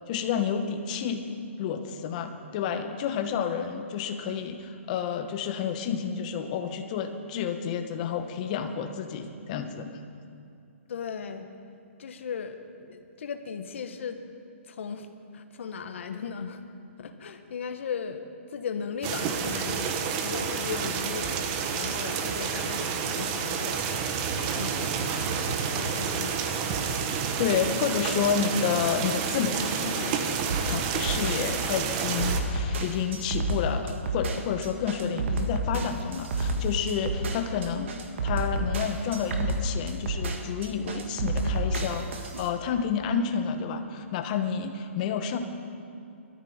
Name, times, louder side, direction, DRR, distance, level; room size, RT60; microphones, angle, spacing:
voice 1, 0.1-1.2 1.6-9.9 27.4-30.3 30.6-37.9 38.2-45.4, left 7 dB, 35° left, 7 dB, 1.1 m, -30 dB
voice 2, 10.9-11.5 12.0-14.2 14.7-15.1 15.3-16.6 17.0-19.9 20.2-21.4 21.7-23.9 24.6-26.6, left 6 dB, 65° left, 7 dB, 1.3 m, -37 dB
sound 1, 19.0-32.4, right 6 dB, 30° right, 1.1 m, -29 dB
sound 2, 27.9-31.6, left 1 dB, 5° left, 4.7 m, -51 dB
sound 3, 30.5-42.5, right 2 dB, 60° right, 1.6 m, -30 dB
19.5 x 13.5 x 4.4 m, 2.5 s
hypercardioid pair, 155°, 7 cm